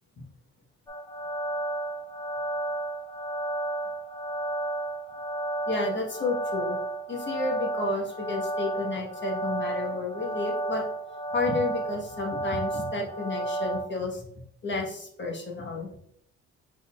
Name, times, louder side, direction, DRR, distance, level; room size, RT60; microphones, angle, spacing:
sound 1, 0.9-13.8, right 2 dB, 10° left, 1.7 m, -32 dB
voice 1, 5.7-6.8 7.1-10.8 11.3-14.2 14.6-15.9, left 3 dB, 40° left, 0 dB, 1.3 m, -31 dB
5.2 x 4.3 x 2.4 m, 0.69 s
cardioid pair, 90°, 30 cm